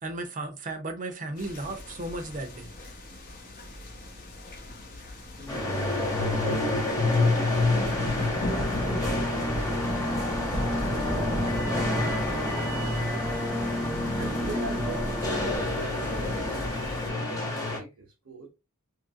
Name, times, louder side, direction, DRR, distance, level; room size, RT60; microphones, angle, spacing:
voice 1, 0.0-2.7, right 2 dB, 35° right, 0.7 m, -35 dB
sound 1, 1.4-17.1, left 1 dB, 40° left, 0.8 m, -37 dB
voice 2, 5.4-5.9 6.6-7.7 8.0-13.6 14.2-16.6 17.1-18.5, right 2 dB, 75° right, 0.9 m, -42 dB
sound 2, 5.5-17.8, left 2 dB, 15° left, 1.1 m, -29 dB
sound 3, 8.4-15.6, equal, ahead, 0.4 m, -32 dB
2.8 x 2.5 x 2.7 m
head